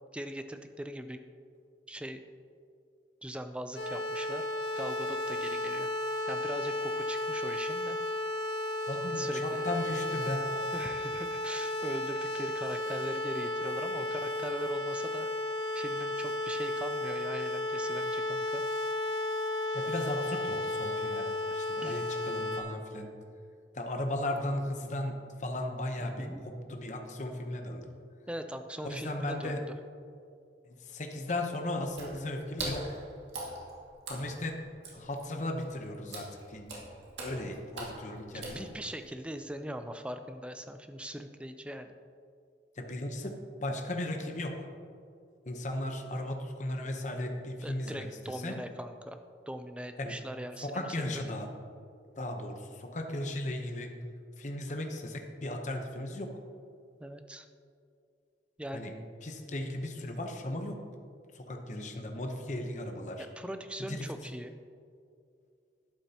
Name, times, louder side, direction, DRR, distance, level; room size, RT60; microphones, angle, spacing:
voice 1, 0.1-1.2 1.9-2.2 3.2-4.4 4.8-5.9 6.3-8.0 9.2-9.6 10.7-15.3 15.7-18.6 21.8-22.0 26.0-26.4 28.3-29.6 38.3-41.9 47.6-49.2 49.5-51.2 57.0-57.5 58.6-58.9 60.0-60.1 63.2-64.5, equal, 5° right, 8 dB, 0.4 m, -41 dB
sound 1, 3.8-22.6, left 2 dB, 70° left, 1.8 m, -33 dB
voice 2, 8.9-10.5 19.7-21.3 21.5-23.1 23.7-27.9 28.8-29.6 30.7-33.0 34.1-34.6 34.9-36.8 37.2-38.7 42.8-44.7 45.5-48.6 50.0-50.2 50.6-51.5 52.2-53.9 54.4-56.3 58.7-58.9 59.2-60.8 61.3-63.3 63.9-64.1, left 1 dB, 45° left, 4 dB, 0.9 m, -36 dB
Water / Splash splatter, 31.9-39.1, right 2 dB, 85° right, 2.1 m, -43 dB
11.5 x 8.8 x 2.9 m, 2.4 s
head